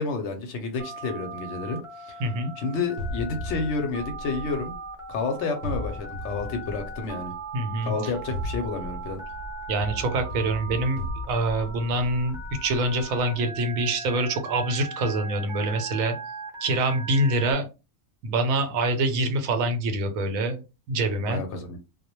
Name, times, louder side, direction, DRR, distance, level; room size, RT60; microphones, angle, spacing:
voice 1, 0.0-2.2 2.6-4.7 5.1-7.3 7.8-9.2 21.3-21.8, left 4 dB, 65° left, 0.8 m, -30 dB
Telephone, 0.8-17.5, right 2 dB, 5° right, 0.4 m, -39 dB
voice 2, 2.2-2.5 7.5-7.9 9.7-16.1 16.6-17.7 18.2-20.6 20.9-21.4, right 2 dB, 85° right, 1.0 m, -25 dB
sound 1, 3.0-5.1 5.6-7.4 8.1-13.2, left 1 dB, 60° right, 0.6 m, -36 dB
2.2 x 2.0 x 2.9 m
omnidirectional pair, 1.4 m